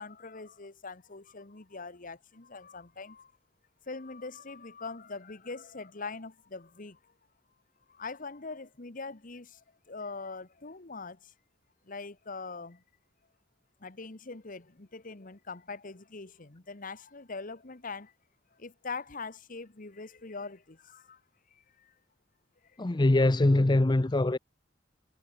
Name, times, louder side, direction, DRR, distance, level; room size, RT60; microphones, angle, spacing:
voice 1, 0.0-3.3 3.9-7.1 7.9-11.3 11.8-12.8 13.8-18.1 18.6-21.2 21.5-21.9 22.6-22.8, left 4 dB, 45° left, 1.4 m, -42 dB
voice 2, 22.8-24.4, left 2 dB, 25° left, 0.6 m, -23 dB
head